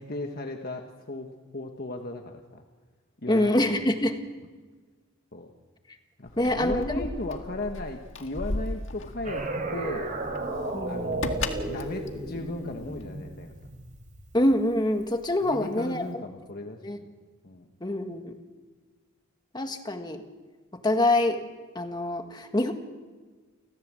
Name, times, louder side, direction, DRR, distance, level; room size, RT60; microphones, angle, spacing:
voice 1, 0.0-2.6 3.2-3.8 5.3-5.5 6.2-10.1 10.8-13.5 15.4-17.1 17.4-17.7, left 2 dB, 50° left, 3 dB, 1.5 m, -36 dB
voice 2, 3.3-4.2 6.4-7.0 10.7-11.2 14.3-16.2 16.8-17.0 17.8-18.4 19.5-20.2 20.8-21.4 21.8-22.7, left 1 dB, 20° left, 6 dB, 1.7 m, -25 dB
Keys jangling, 6.2-13.2, left 2 dB, 65° left, 1.9 m, -36 dB
sound 1, 9.2-14.6, right 2 dB, 40° right, 3.8 m, -34 dB
30.0 x 14.5 x 7.7 m, 1.4 s
head